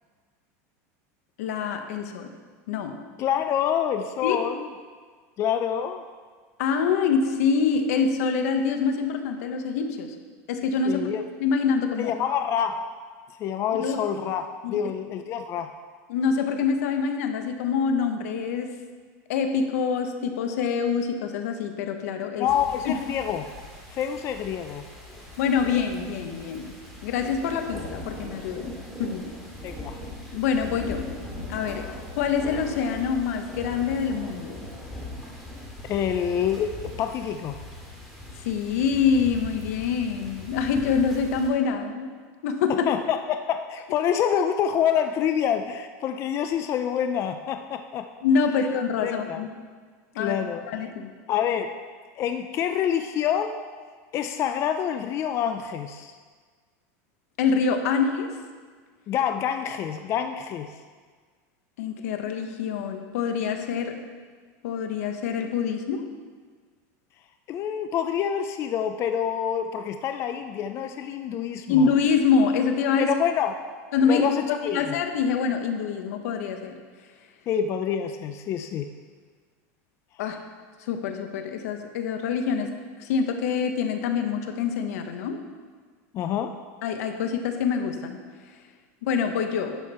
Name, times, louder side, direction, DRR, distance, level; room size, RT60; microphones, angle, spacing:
voice 1, 1.4-2.3 2.7-3.0 4.2-4.4 6.6-10.1 10.5-11.1 11.4-12.1 13.8-14.0 14.6-14.8 16.1-18.8 19.3-22.5 22.8-22.9 25.4-26.7 27.0-28.7 29.0-29.2 30.3-31.1 31.5-31.9 32.2-34.6 38.4-42.1 42.4-42.9 48.2-49.5 50.1-50.4 50.7-51.1 57.4-58.4 61.8-64.0 64.6-66.1 71.7-73.1 73.9-74.3 74.7-76.8 80.2-80.4 80.8-85.4 86.8-88.2 89.0-89.8, left 6 dB, 80° left, 6 dB, 1.1 m, -25 dB
voice 2, 3.2-4.7 5.4-6.0 10.9-11.2 12.0-12.9 13.4-15.7 22.4-23.5 23.9-24.9 29.6-30.0 35.8-37.6 42.7-48.1 49.0-49.4 50.1-50.6 51.3-51.7 52.2-53.6 54.1-56.2 59.1-60.7 67.5-71.9 73.0-73.5 74.0-75.0 77.5-78.9 86.1-86.6, left 9 dB, 35° left, 7 dB, 0.4 m, -27 dB
sound 1, 22.4-41.5, left 1 dB, ahead, 2.3 m, -40 dB
11.0 x 7.3 x 4.3 m, 1.5 s
supercardioid pair, 145°, 8 cm